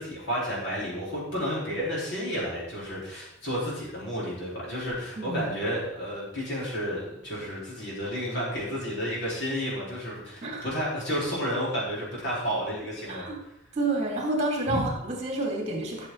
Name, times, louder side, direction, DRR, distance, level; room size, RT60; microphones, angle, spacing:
voice 1, 0.0-13.3 14.7-14.8, equal, 55° left, -6 dB, 4.5 m, -31 dB
voice 2, 5.2-5.5 10.4-10.7 13.1-13.4 13.7-16.1, right 2 dB, 35° right, 0 dB, 2.5 m, -29 dB
12.5 x 6.7 x 4.0 m, 0.84 s
head